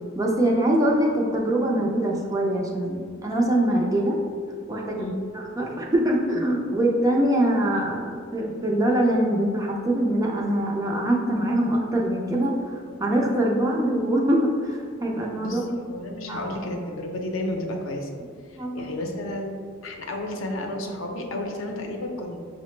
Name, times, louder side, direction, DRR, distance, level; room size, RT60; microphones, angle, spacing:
voice 1, 0.2-4.2 4.7-15.8 16.3-16.5 18.6-18.9, right 1 dB, 15° right, -1 dB, 0.4 m, -23 dB
voice 2, 15.4-18.1 18.5-19.6 19.8-22.4, left 1 dB, 70° left, 2 dB, 0.5 m, -32 dB
5.5 x 2.0 x 3.1 m, 2.1 s
head